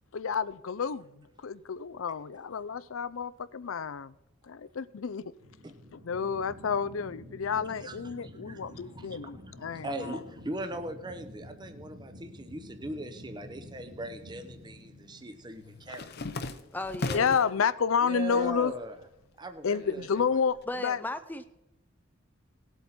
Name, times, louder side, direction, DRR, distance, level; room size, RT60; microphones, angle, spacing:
voice 1, 0.1-4.1 4.4-5.3 5.9-10.2 17.1-18.8 19.6-21.0, left 6 dB, 80° left, 0.5 m, -30 dB
sound 1, 5.4-16.3, left 1 dB, 65° right, 3.0 m, -49 dB
voice 2, 7.8-9.3 9.8-16.1 18.0-18.9 19.4-20.2, right 2 dB, 20° right, 0.7 m, -40 dB
sound 2, 13.7-14.5 14.8-17.6 18.0-18.7 19.0-20.6, left 2 dB, 50° left, 0.8 m, -39 dB
voice 3, 16.7-17.4 20.7-21.4, left 1 dB, 10° left, 0.5 m, -36 dB
18.5 x 8.0 x 4.3 m
head